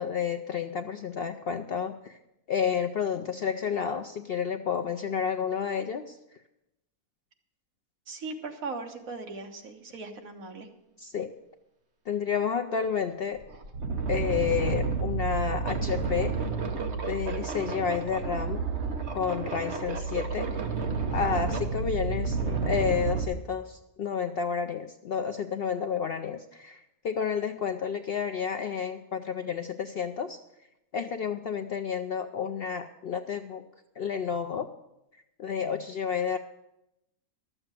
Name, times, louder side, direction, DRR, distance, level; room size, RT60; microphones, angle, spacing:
voice 1, 0.0-2.2 2.5-6.2 11.0-11.3 12.1-13.4 14.1-16.4 17.1-18.6 19.1-20.5 21.1-30.4 30.9-33.6 34.0-34.7 35.4-36.4, left 7 dB, 65° left, 7 dB, 0.5 m, -30 dB
voice 2, 8.1-10.7, right 3 dB, 65° right, 4 dB, 1.7 m, -38 dB
sound 1, 12.8-12.9 13.4-23.3, right 4 dB, 50° right, 1.4 m, -30 dB
12.0 x 7.8 x 7.5 m, 0.88 s
omnidirectional pair, 1.6 m